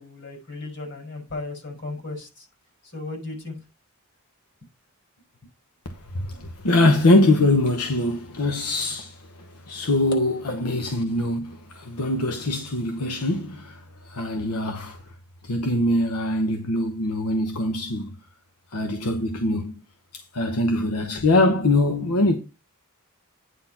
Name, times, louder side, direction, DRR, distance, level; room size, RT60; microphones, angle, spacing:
voice 1, 0.0-2.5 2.8-3.6 6.2-6.5, left 2 dB, 55° left, 5.2 m, -36 dB
voice 2, 6.1-9.3 9.7-15.0 15.4-18.2 18.7-19.8 20.1-22.4, left 2 dB, 90° left, 1.0 m, -23 dB
9.4 x 4.2 x 5.7 m
head